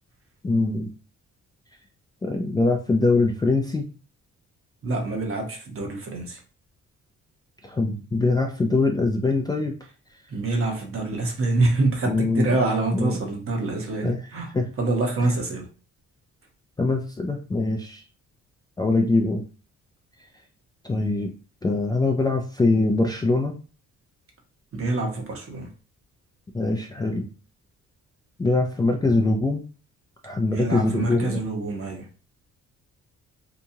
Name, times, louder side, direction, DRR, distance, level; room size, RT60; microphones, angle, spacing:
voice 1, 0.4-0.9 2.2-3.9 7.6-9.7 12.1-12.6 12.9-13.2 14.0-14.2 14.5-14.7 16.8-18.0 18.8-19.4 20.8-21.3 21.6-23.5 26.5-27.3 28.4-29.6 30.2-31.4, left 2 dB, 15° left, 2 dB, 0.3 m, -23 dB
voice 2, 4.8-6.4 10.3-14.5 14.8-15.7 24.7-25.7 30.5-32.1, right 2 dB, 45° right, 1 dB, 1.0 m, -26 dB
2.9 x 2.3 x 2.7 m, 0.36 s
cardioid pair, 90°, 30 cm